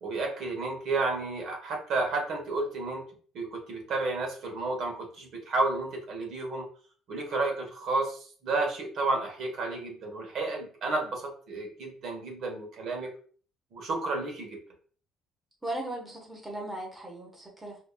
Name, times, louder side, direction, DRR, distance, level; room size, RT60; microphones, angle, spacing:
voice 1, 0.0-3.1 3.3-6.7 7.1-13.1 13.7-14.6, right 3 dB, 60° right, 1 dB, 1.1 m, -31 dB
voice 2, 15.6-17.8, right 1 dB, 10° right, -1 dB, 1.0 m, -37 dB
4.9 x 2.5 x 2.2 m, 0.43 s
cardioid pair, 150°, 0 cm